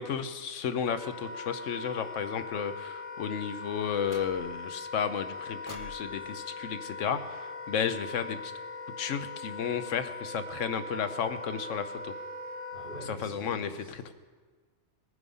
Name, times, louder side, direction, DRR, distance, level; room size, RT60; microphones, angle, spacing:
voice 1, 0.0-8.5 9.0-12.1 13.1-14.1, left 7 dB, 80° left, 9 dB, 1.1 m, -33 dB
Wind instrument woodwind instrument, 0.8-13.1, left 3 dB, 50° left, 3.9 m, -41 dB
sound 1, 4.0-4.7 5.7-7.9, left 2 dB, 20° left, 0.7 m, -51 dB
voice 2, 12.7-13.9, right 1 dB, 55° right, -8 dB, 4.5 m, -45 dB
19.0 x 9.6 x 5.4 m, 1.5 s
omnidirectional pair, 1.3 m